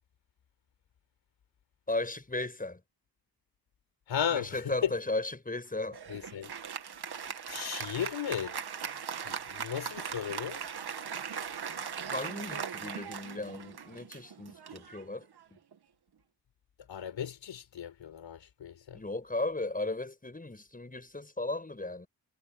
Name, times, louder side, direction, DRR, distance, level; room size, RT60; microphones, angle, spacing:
voice 1, 1.9-2.8 4.3-6.0 12.1-15.2 18.9-22.1, left 2 dB, 20° left, 7.1 m, -35 dB
voice 2, 4.1-4.9 6.1-6.5 7.5-8.5 9.2-10.6 16.9-19.0, left 8 dB, 85° left, 4.7 m, -35 dB
Applause, 5.9-15.7, right 7 dB, 60° right, 2.0 m, -39 dB
cardioid pair, 90°, 44 cm